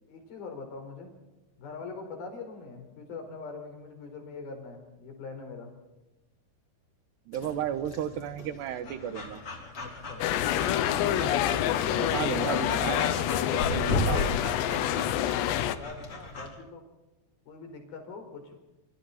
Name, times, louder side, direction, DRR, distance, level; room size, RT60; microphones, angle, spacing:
voice 1, 0.1-1.1 1.6-5.7 9.8-10.3 15.3-16.8 17.5-18.5, left 4 dB, 60° left, 4 dB, 6.4 m, -43 dB
Breathing / Dog, 7.3-16.5, left 2 dB, 30° left, 4.3 m, -36 dB
voice 2, 7.3-9.4 11.9-13.3 13.7-14.5, right 10 dB, 75° right, 11 dB, 3.4 m, -34 dB
sound 1, 10.2-15.8, left 11 dB, 75° left, 3.1 m, -27 dB
28.0 x 26.0 x 4.3 m, 1.1 s
omnidirectional pair, 5.2 m